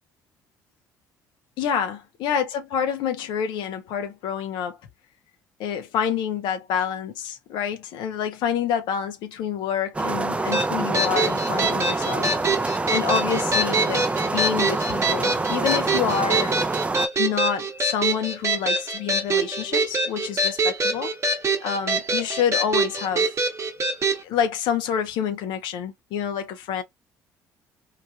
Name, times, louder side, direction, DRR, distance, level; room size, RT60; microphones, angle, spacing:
voice 1, 1.6-4.8 5.6-16.6 17.2-21.1 21.6-23.3 24.2-26.8, left 8 dB, 60° left, 0.5 m, -28 dB
sound 1, 9.9-17.1, right 3 dB, 15° right, 0.4 m, -26 dB
sound 2, 10.5-24.2, right 2 dB, 35° right, 0.9 m, -25 dB
3.1 x 2.2 x 2.3 m
figure-of-eight pair, 50°, 9 cm